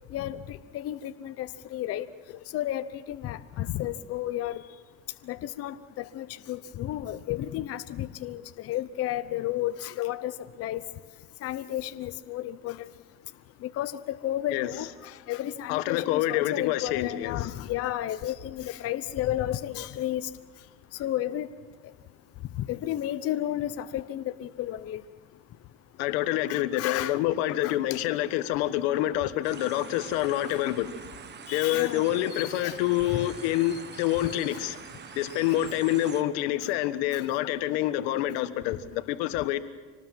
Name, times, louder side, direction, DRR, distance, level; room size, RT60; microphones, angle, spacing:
voice 1, 0.1-2.1 2.5-4.6 5.3-10.8 11.4-12.9 13.6-20.3 21.0-21.5 22.6-25.0 26.5-27.2 27.6-28.0 30.5-30.6 31.5-32.8 33.1-33.3 33.7-33.8 34.2-34.6 35.3-35.8 37.1-37.2, left 13 dB, 50° left, 11 dB, 0.9 m, -33 dB
voice 2, 15.7-17.5 26.0-30.9 31.5-34.8 35.2-39.6, left 14 dB, 85° left, 11 dB, 1.4 m, -27 dB
sound 1, 29.4-36.2, right 7 dB, 35° right, 1.6 m, -44 dB
26.0 x 19.5 x 7.5 m, 1.3 s
cardioid pair, 120°, 31 cm